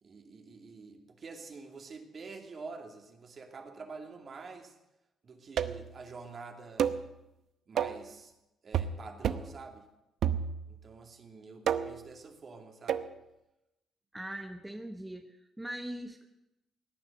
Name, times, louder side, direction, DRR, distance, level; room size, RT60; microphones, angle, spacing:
voice 1, 0.0-4.7 5.2-6.9 7.7-8.3 8.6-9.9 10.7-13.1, right 4 dB, 45° right, 4 dB, 2.6 m, -47 dB
sound 1, 5.6-5.9 6.8-7.1 7.8-8.1 8.7-9.0 9.2-9.5 10.2-10.8 11.7-12.1 12.9-13.1, right 8 dB, 70° right, 0.8 m, -30 dB
voice 2, 14.1-16.3, right 1 dB, 10° right, 5 dB, 1.1 m, -41 dB
17.5 x 9.8 x 8.0 m, 0.93 s
cardioid pair, 90°, 0 cm